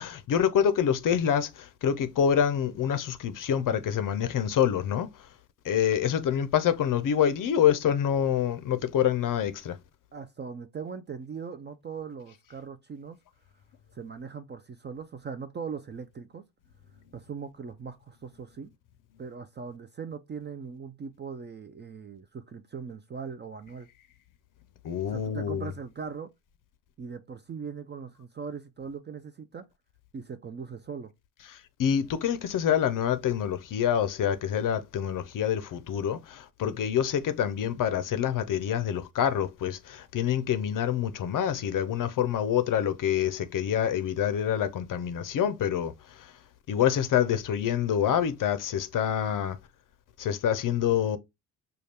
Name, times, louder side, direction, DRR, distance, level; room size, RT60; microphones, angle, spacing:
voice 1, 0.0-5.1 5.6-9.8 24.8-25.7 31.8-45.9 46.7-49.6 50.2-51.2, left 9 dB, 45° left, 0.6 m, -26 dB
voice 2, 10.1-13.2 13.9-16.4 17.1-18.7 19.2-23.9 25.1-26.3 27.0-29.7 30.1-31.1, right 6 dB, 25° right, 0.4 m, -40 dB
5.0 x 2.4 x 3.3 m
hypercardioid pair, 50°, 48 cm